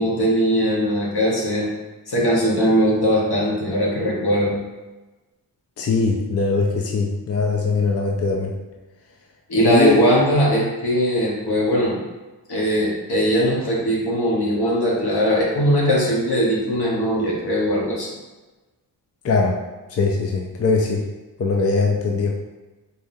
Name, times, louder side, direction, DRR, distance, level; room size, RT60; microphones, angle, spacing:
voice 1, 0.0-1.7 2.1-4.6 9.5-12.0 12.5-18.1, equal, 75° left, -4 dB, 1.3 m, -20 dB
voice 2, 5.8-8.5 9.6-10.0 19.2-19.5 19.9-21.0 21.4-22.3, left 4 dB, 40° left, 0 dB, 0.5 m, -21 dB
4.1 x 3.5 x 2.7 m, 1.2 s
wide cardioid pair, 120°, 38 cm